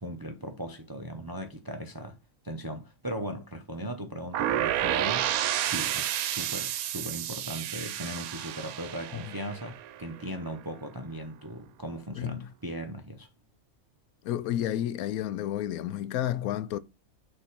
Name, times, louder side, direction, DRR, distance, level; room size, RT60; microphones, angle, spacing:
voice 1, 0.0-2.2 2.4-13.3, right 1 dB, 30° right, 0.4 m, -38 dB
sound 1, 4.3-10.2, right 12 dB, 90° right, 1.0 m, -30 dB
voice 2, 12.1-12.5 14.2-16.8, left 12 dB, 85° left, 1.0 m, -31 dB
6.5 x 3.0 x 5.8 m
omnidirectional pair, 1.5 m